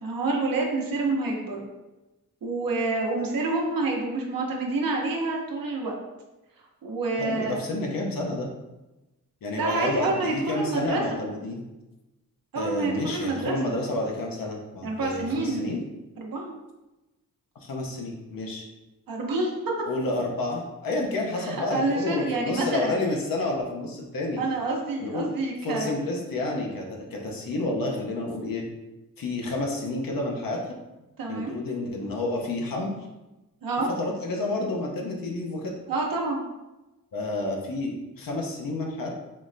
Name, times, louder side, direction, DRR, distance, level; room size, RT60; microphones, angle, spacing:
voice 1, 0.0-1.7 2.4-5.9 6.8-7.6 9.5-11.3 12.5-13.7 14.8-15.6 16.2-16.6 19.1-19.5 21.4-22.9 24.4-25.9 31.2-31.5 33.6-33.9 35.9-36.4, right 3 dB, 90° right, -1 dB, 0.8 m, -28 dB
voice 2, 7.2-8.5 9.4-11.6 12.5-15.8 17.6-18.6 19.9-24.4 25.0-25.3 25.6-28.6 29.2-30.7 31.3-32.9 34.0-35.7 37.1-39.1, left 2 dB, 85° left, 0 dB, 0.8 m, -30 dB
5.4 x 3.1 x 2.6 m, 1.0 s
wide cardioid pair, 145°, 33 cm